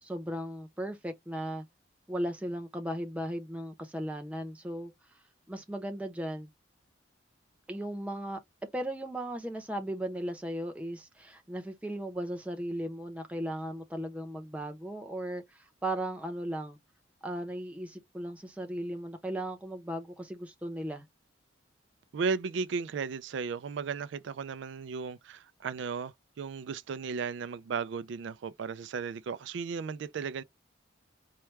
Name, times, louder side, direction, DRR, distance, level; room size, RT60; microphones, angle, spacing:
voice 1, 0.0-1.6 2.1-4.9 5.5-6.5 7.7-8.4 8.7-16.8 17.2-21.1, right 1 dB, 5° right, 0.7 m, -36 dB
voice 2, 22.1-30.4, right 5 dB, 70° right, 0.4 m, -35 dB
4.5 x 2.2 x 3.1 m
head